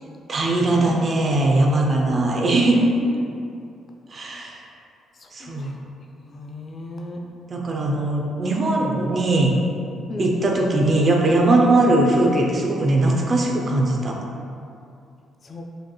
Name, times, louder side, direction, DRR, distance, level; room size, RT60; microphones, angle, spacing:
voice 1, 0.3-2.9 4.1-4.6 5.3-5.8 7.5-9.6 10.2-14.2, right 2 dB, 40° right, 0 dB, 0.6 m, -20 dB
voice 2, 5.1-7.3 10.1-10.4 11.7-11.8 15.4-15.7, left 2 dB, 45° left, 1 dB, 0.4 m, -36 dB
4.9 x 2.9 x 2.3 m, 2.5 s
cardioid pair, 90°, 0 cm